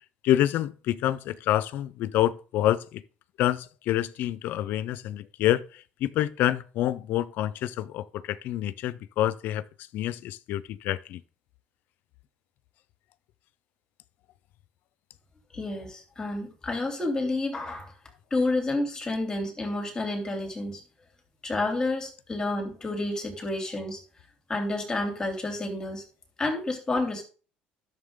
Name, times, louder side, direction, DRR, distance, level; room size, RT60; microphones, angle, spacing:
voice 1, 0.2-3.0 3.4-9.6 9.9-11.2, left 13 dB, 65° left, 0.6 m, -27 dB
voice 2, 15.5-17.9 18.3-20.8 21.4-24.0 24.5-26.0 26.4-27.2, left 2 dB, 20° left, 3.1 m, -30 dB
11.5 x 7.1 x 3.8 m
cardioid pair, 110°, 3 cm